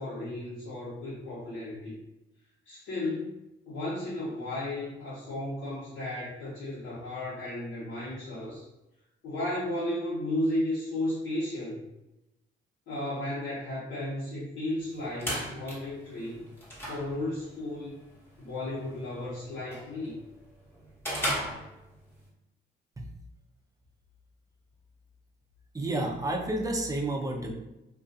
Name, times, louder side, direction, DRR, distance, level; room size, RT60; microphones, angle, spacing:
voice 1, 0.0-1.9 2.7-3.4 3.7-8.6 9.2-11.9 12.9-16.5 16.9-18.0 18.4-20.2, left 1 dB, 70° left, -10 dB, 0.9 m, -34 dB
sound 1, 14.8-22.3, equal, 10° left, 0.8 m, -38 dB
voice 2, 25.7-27.5, right 2 dB, 15° right, 1 dB, 0.4 m, -30 dB
2.4 x 2.3 x 2.6 m, 0.92 s
cardioid pair, 90°, 20 cm